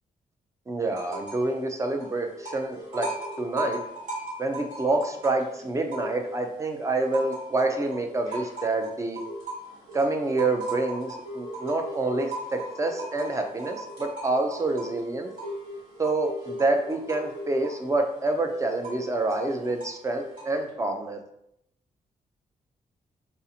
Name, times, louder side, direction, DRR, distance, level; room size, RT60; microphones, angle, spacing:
voice 1, 0.7-3.1 3.4-3.8 4.4-9.2 9.9-15.3 16.0-21.2, right 2 dB, 20° right, 4 dB, 0.4 m, -27 dB
sound 1, 0.9-1.5 1.8-6.5 6.9-20.7, right 1 dB, 70° right, 1.3 m, -38 dB
2.7 x 2.4 x 2.7 m, 0.76 s
cardioid pair, 120°, 15 cm